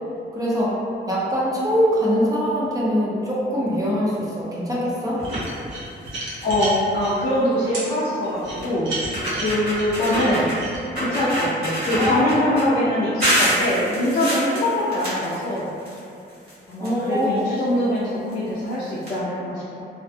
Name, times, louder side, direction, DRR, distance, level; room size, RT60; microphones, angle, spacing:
voice 1, 0.3-0.8 1.1-5.2 11.9-12.3 12.7-12.8 16.8-17.3, equal, 20° right, -7 dB, 0.5 m, -23 dB
sound 1, 5.2-5.5 6.0-6.1 6.4-6.7 7.9-8.0 8.6-8.7 9.0-10.6 10.9-12.6 13.2-16.0 16.3-17.4 18.3-18.4 18.7-18.8 19.0-19.1, equal, 55° right, 1.1 m, -25 dB
sound 2, 5.2-7.1 7.7-7.9 8.4-10.8, right 2 dB, 80° right, 0.8 m, -32 dB
voice 2, 6.4-10.5 11.0-16.0 16.7-19.8, left 1 dB, 50° left, -9 dB, 0.5 m, -23 dB
2.5 x 2.1 x 2.6 m, 2.5 s
wide cardioid pair, 145°, 19 cm